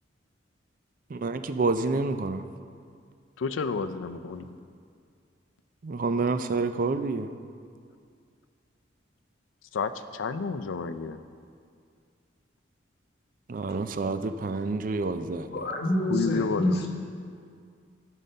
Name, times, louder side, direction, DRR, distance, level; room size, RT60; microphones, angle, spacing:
voice 1, 1.1-2.4 5.8-7.3 13.5-15.5, right 3 dB, 45° right, 10 dB, 0.4 m, -28 dB
voice 2, 3.4-4.5 9.7-11.2 16.1-16.8, left 4 dB, 90° left, 11 dB, 0.4 m, -30 dB
voice 3, 15.5-16.9, left 1 dB, 55° left, -1 dB, 1.2 m, -27 dB
13.0 x 5.5 x 5.4 m, 2.3 s
head